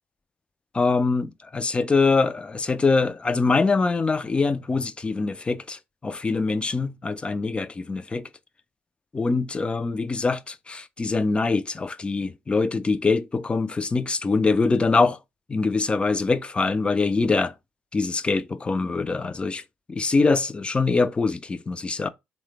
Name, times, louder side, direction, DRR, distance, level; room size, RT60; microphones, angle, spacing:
voice 1, 0.7-8.3 9.1-15.2 15.5-17.5 17.9-19.6 19.9-22.1, left 4 dB, 25° left, 0.3 m, -23 dB
3.2 x 2.1 x 3.1 m
supercardioid pair, 70°, 5 cm